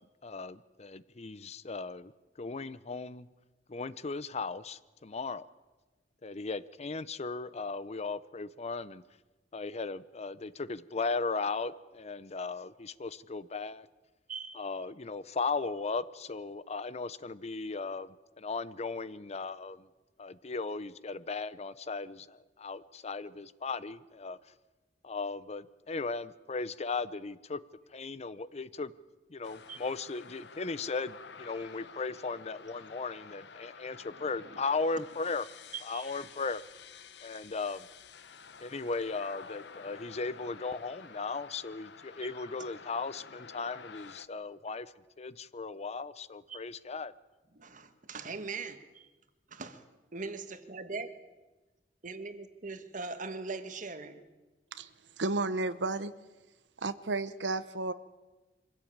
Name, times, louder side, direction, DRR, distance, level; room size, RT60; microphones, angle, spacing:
voice 1, 0.2-2.1 2.4-3.3 3.7-5.5 6.2-9.0 9.5-13.9 14.6-18.1 18.4-19.9 20.2-24.4 25.0-27.6 27.9-28.9 29.3-35.4 35.8-36.6 37.2-37.9 38.6-44.9 45.2-47.1, left 4 dB, 35° left, 0.6 m, -37 dB
voice 2, 14.3-14.7 29.7-29.8 34.1-34.6 35.0-35.1 35.7-36.1 42.2-42.3 46.5-46.6 47.5-49.1 49.5-49.8 50.1-51.1 52.0-54.2, right 4 dB, 45° right, 1.6 m, -41 dB
sound 1, 29.4-44.3, left 5 dB, 70° left, 0.9 m, -51 dB
voice 3, 55.2-56.1 56.8-57.9, right 3 dB, 80° right, 0.9 m, -32 dB
24.0 x 16.5 x 8.7 m
head